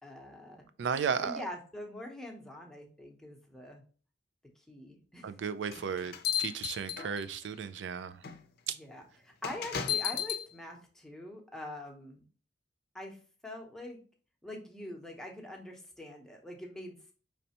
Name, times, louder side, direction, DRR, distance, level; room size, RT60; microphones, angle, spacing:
voice 1, 0.0-0.7 1.2-3.8 4.6-5.4 8.7-12.2 12.9-13.2 13.4-14.0 14.4-17.1, left 1 dB, 5° left, 0 dB, 0.8 m, -44 dB
voice 2, 0.8-1.4 5.2-6.1 6.4-8.2 8.7-8.8, right 6 dB, 85° right, 12 dB, 0.4 m, -34 dB
sound 1, 5.7-7.5 8.2-8.4 9.4-10.4, left 8 dB, 55° left, 0.5 m, -33 dB
5.3 x 3.2 x 2.8 m, 0.39 s
head